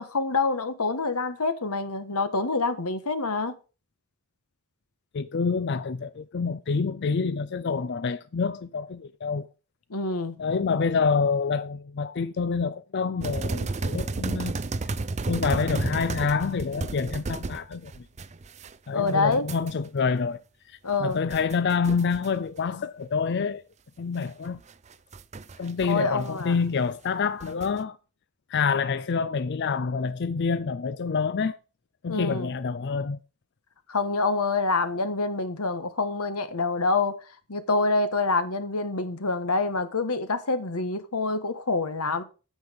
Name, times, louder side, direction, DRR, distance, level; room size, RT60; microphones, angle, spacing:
voice 1, 0.0-3.5 9.9-10.3 18.9-19.5 20.8-21.2 25.9-26.5 32.1-32.5 33.9-37.2 37.5-42.2, left 3 dB, 90° left, 1.5 m, -26 dB
voice 2, 5.1-9.5 10.4-14.6 15.3-18.1 18.9-20.4 20.7-23.6 24.0-24.6 25.6-28.0 28.5-31.6 32.0-33.2, left 5 dB, 50° left, 0.5 m, -27 dB
sound 1, 13.2-18.7 19.1-19.7 20.9-22.3 22.6-22.7 24.4-25.9 26.2-26.3 27.4-27.8, right 3 dB, 30° right, 0.5 m, -32 dB
9.4 x 8.2 x 5.2 m
head